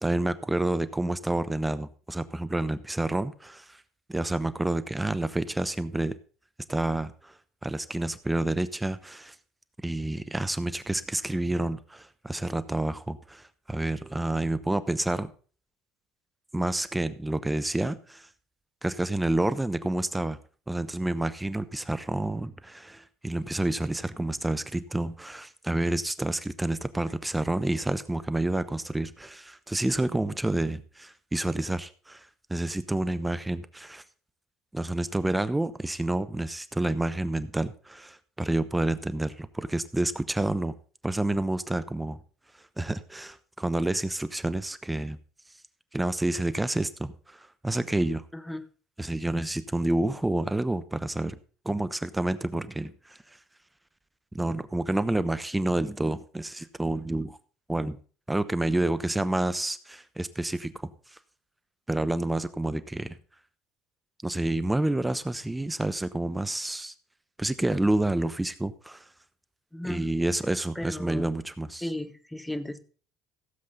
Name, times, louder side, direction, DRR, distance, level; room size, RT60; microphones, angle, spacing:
voice 1, 0.0-3.8 4.1-6.2 6.7-7.4 7.6-9.4 9.8-15.3 16.5-18.3 18.8-20.4 20.7-34.0 34.7-40.7 41.0-42.2 42.8-45.2 45.9-48.2 49.0-51.4 51.6-53.4 54.3-57.4 57.7-58.0 58.3-61.2 61.9-63.2 64.2-66.9 67.4-69.0 69.8-71.9, right 1 dB, 10° right, 14 dB, 0.9 m, -29 dB
voice 2, 48.3-48.6 69.7-70.1 70.7-71.4 71.8-72.8, left 1 dB, 5° left, 11 dB, 1.3 m, -35 dB
16.0 x 7.6 x 4.0 m, 0.40 s
hypercardioid pair, 65°, 0 cm